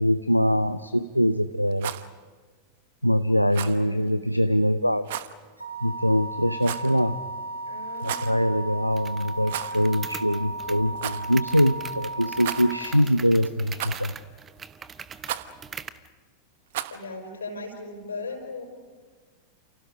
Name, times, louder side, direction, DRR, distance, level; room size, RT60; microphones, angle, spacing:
voice 1, 0.0-1.9 3.0-5.1 5.8-7.2 8.0-14.1, equal, 90° left, 11 dB, 0.6 m, -23 dB
Rattle, 1.7-2.1 3.5-3.8 5.1-5.3 6.6-7.0 7.9-8.4 9.4-9.9 10.1-10.2 11.0-11.2 12.4-12.9 13.8-14.2 15.2-15.5 16.7-17.0, right 12 dB, 55° right, 1.0 m, -34 dB
voice 2, 3.5-4.1 7.6-8.4 16.9-18.7, left 2 dB, 70° left, 5 dB, 5.4 m, -38 dB
sound 1, 5.6-12.8, right 2 dB, 85° right, 4.0 m, -35 dB
sound 2, 9.0-16.1, right 6 dB, 20° right, 1.0 m, -42 dB
29.5 x 28.5 x 5.2 m, 1.5 s
figure-of-eight pair, 90°, 0 cm